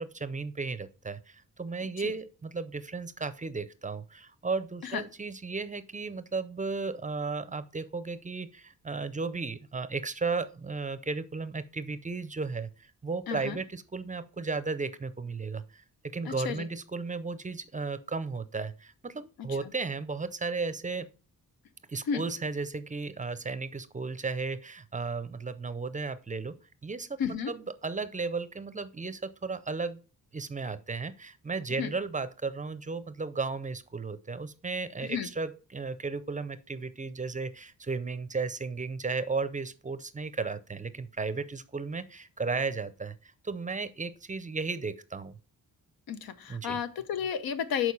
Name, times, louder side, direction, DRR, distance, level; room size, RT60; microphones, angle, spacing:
voice 1, 0.0-21.1 21.9-26.6 26.8-27.2 27.5-30.0 30.3-45.4 46.5-46.8, right 4 dB, 20° right, 14 dB, 0.5 m, -34 dB
voice 2, 13.3-13.6 16.3-16.7 22.1-22.2 27.2-27.5 31.8-31.9 35.0-35.3 46.1-47.9, left 8 dB, 90° left, 11 dB, 0.8 m, -32 dB
6.5 x 4.4 x 5.5 m, 0.35 s
wide cardioid pair, 115°, 35 cm